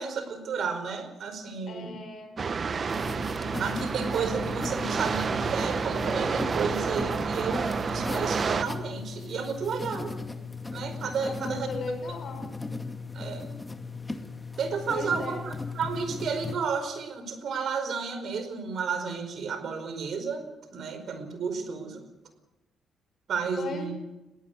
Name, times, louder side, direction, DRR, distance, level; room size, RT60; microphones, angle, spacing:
voice 1, 0.0-2.0 3.6-10.1 10.7-11.7 13.1-13.5 14.6-22.1 23.3-23.9, right 5 dB, 60° right, 8 dB, 4.9 m, -32 dB
voice 2, 1.7-3.0 11.2-12.5 14.9-15.4 23.6-23.9, left 3 dB, 55° left, 5 dB, 6.3 m, -37 dB
sound 1, 2.4-8.6, right 5 dB, 40° right, 1.3 m, -29 dB
sound 2, 2.9-16.6, left 4 dB, 15° left, 2.1 m, -37 dB
21.5 x 17.0 x 8.0 m, 0.99 s
cardioid pair, 90°, 0 cm